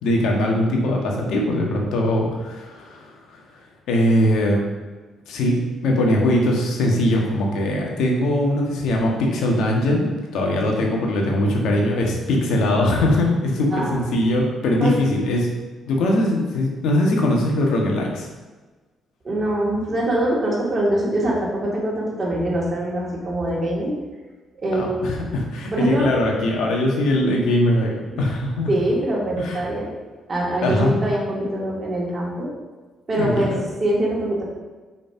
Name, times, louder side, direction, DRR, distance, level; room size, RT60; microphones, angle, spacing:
voice 1, 0.0-3.4 3.9-4.6 5.3-5.5 5.8-10.1 10.3-15.5 15.9-18.3 24.7-27.9 28.2-28.7 29.4-29.6 30.6-31.0 33.1-33.6, left 1 dB, 80° left, 0 dB, 1.6 m, -21 dB
voice 2, 19.2-24.0 24.6-25.1 25.7-26.1 28.1-28.2 28.7-29.9 30.3-32.5 33.1-33.5 33.8-34.4, right 1 dB, 35° right, -4 dB, 2.6 m, -23 dB
5.5 x 5.2 x 5.9 m, 1.3 s
cardioid pair, 90°, 0 cm